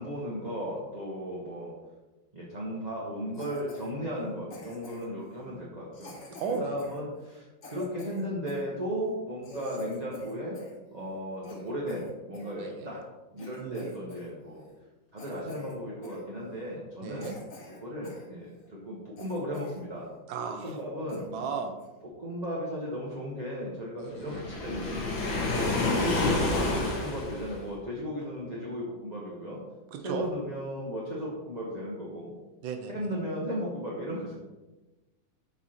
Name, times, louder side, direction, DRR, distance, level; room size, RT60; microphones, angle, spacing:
voice 1, 0.0-1.7 2.3-6.2 6.6-10.6 10.9-13.0 13.3-14.6 15.1-17.3 17.8-20.1 20.6-21.2 22.2-29.6 30.0-32.3 32.9-34.3, equal, 25° right, -5 dB, 1.3 m, -35 dB
Cough, 3.3-3.9 4.5-5.2 5.9-8.7 9.1-9.2 9.4-10.8 11.1-12.5 13.0-13.1 13.4-14.3 14.6-14.8 15.2-15.8 16.0-16.2 16.7-16.8 17.2-18.3 18.6-18.7 19.2-19.9 20.2-20.3 20.6-20.8 21.1-21.3 21.8-22.0, left 2 dB, 45° left, 1.7 m, -47 dB
voice 2, 6.4-6.8 12.6-12.9 13.6-14.0 17.0-17.4 20.3-20.8 21.1-21.7 24.0-24.4 29.9-30.2 32.6-32.9, right 5 dB, 90° right, 5 dB, 1.5 m, -35 dB
Waves surf, 24.2-27.7, left 2 dB, 85° left, 2.1 m, -29 dB
7.9 x 5.9 x 4.3 m, 1.1 s
omnidirectional pair, 2.0 m